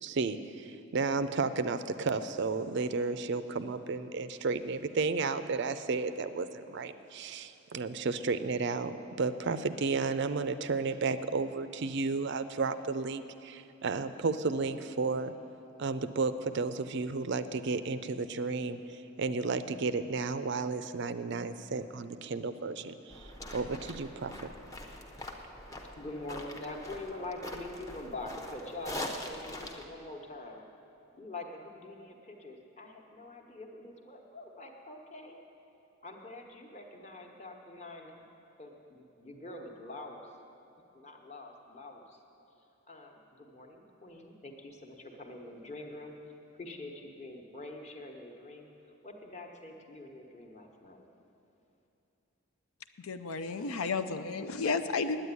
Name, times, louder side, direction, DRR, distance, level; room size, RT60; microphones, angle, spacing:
voice 1, 0.0-15.3 15.8-24.5, right 4 dB, 55° right, 12 dB, 0.4 m, -33 dB
sound 1, 23.1-29.9, left 1 dB, 15° left, 0.7 m, -43 dB
voice 2, 25.9-30.6 31.1-35.4 36.0-38.2 38.6-40.3 40.9-42.2 42.9-46.1 46.5-48.7 49.0-51.1, left 2 dB, 30° left, 2 dB, 1.1 m, -45 dB
voice 3, 53.0-55.2, left 4 dB, 80° left, 9 dB, 0.5 m, -32 dB
9.4 x 8.9 x 9.6 m, 2.9 s
head